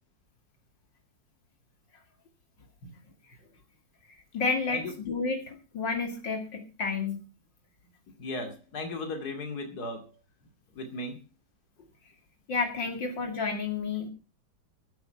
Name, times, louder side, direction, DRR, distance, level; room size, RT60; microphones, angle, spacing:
voice 1, 4.3-7.2 12.5-14.1, left 4 dB, 70° left, 4 dB, 3.0 m, -31 dB
voice 2, 8.2-10.1 10.7-11.2, left 2 dB, 55° left, 5 dB, 3.0 m, -36 dB
15.0 x 11.5 x 4.6 m, 0.32 s
omnidirectional pair, 2.0 m